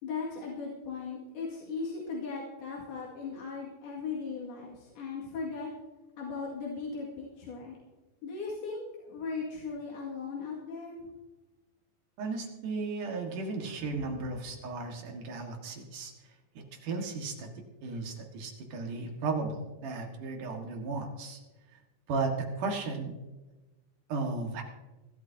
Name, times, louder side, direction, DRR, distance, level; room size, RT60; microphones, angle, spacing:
voice 1, 0.0-5.7 6.2-7.8 8.2-11.0 14.1-14.2, left 4 dB, 80° left, -4 dB, 4.1 m, -38 dB
voice 2, 12.2-16.1 16.5-17.5 17.8-21.4 22.1-23.1 24.1-24.6, right 3 dB, 60° right, 2 dB, 3.1 m, -35 dB
25.0 x 12.5 x 2.8 m, 1.1 s
omnidirectional pair, 4.4 m